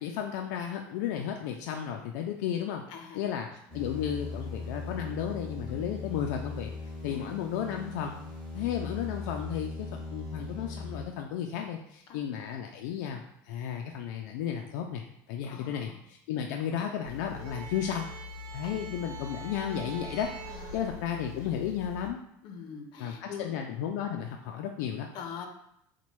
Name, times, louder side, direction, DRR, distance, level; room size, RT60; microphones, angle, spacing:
voice 1, 0.0-2.8 3.1-6.7 7.0-8.2 8.5-18.1 18.5-22.2 23.0-25.1, left 9 dB, 80° left, 2 dB, 0.4 m, -34 dB
voice 2, 2.9-3.3 5.7-5.8 7.1-7.2 12.1-12.2 15.5-16.0 18.6-18.8 20.5-20.8 21.3-21.4 22.4-23.5 25.1-25.5, left 6 dB, 55° left, 5 dB, 0.7 m, -43 dB
sound 1, 3.7-11.1, left 3 dB, 10° left, 1.2 m, -39 dB
sound 2, 17.0-22.1, left 1 dB, 85° right, 0.8 m, -42 dB
4.1 x 2.2 x 4.6 m, 0.76 s
cardioid pair, 140°, 9 cm